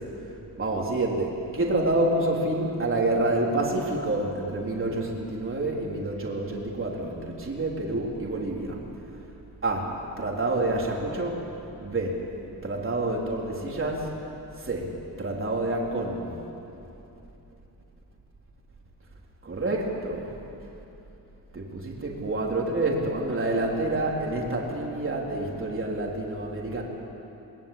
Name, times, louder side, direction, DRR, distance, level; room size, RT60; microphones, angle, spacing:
voice 1, 0.0-8.8 9.1-9.2 9.6-11.5 11.8-12.2 12.6-14.1 14.6-16.4 19.4-20.3 21.5-26.8, right 2 dB, 35° right, -2 dB, 3.9 m, -28 dB
21.5 x 21.5 x 8.9 m, 2.9 s
wide cardioid pair, 140°, 38 cm